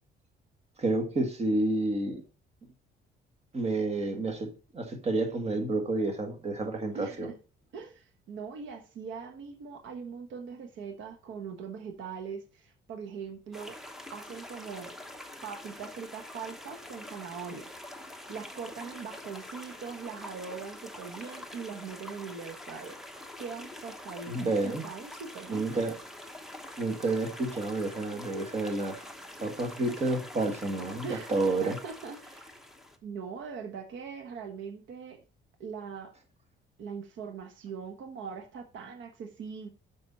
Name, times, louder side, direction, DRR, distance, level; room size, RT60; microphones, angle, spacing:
voice 1, 0.8-2.2 3.5-7.3 24.3-24.8 25.5-25.9 26.8-29.0 29.4-31.8, right 2 dB, 35° right, 4 dB, 1.8 m, -30 dB
voice 2, 6.9-7.4 7.7-13.8 14.1-14.9 15.4-17.7 18.3-23.0 23.4-25.8 31.0-32.6 33.0-35.2 35.6-36.1 36.8-39.7, right 6 dB, 75° right, 6 dB, 1.2 m, -41 dB
sound 1, 13.5-33.0, left 1 dB, ahead, 1.0 m, -45 dB
7.8 x 6.3 x 4.2 m, 0.34 s
cardioid pair, 130°, 20 cm